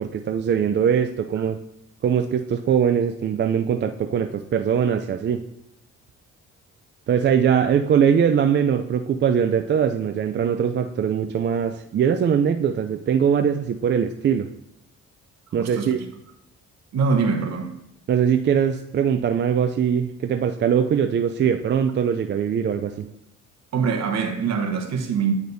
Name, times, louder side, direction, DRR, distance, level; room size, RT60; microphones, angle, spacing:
voice 1, 0.0-1.6 2.0-5.5 7.1-14.5 15.5-16.0 18.1-23.1, right 8 dB, 40° right, 0.4 m, -21 dB
voice 2, 15.6-15.9 16.9-17.7 23.7-25.3, right 5 dB, 60° right, 1.1 m, -23 dB
9.2 x 5.0 x 2.6 m
cardioid pair, 90°, 30 cm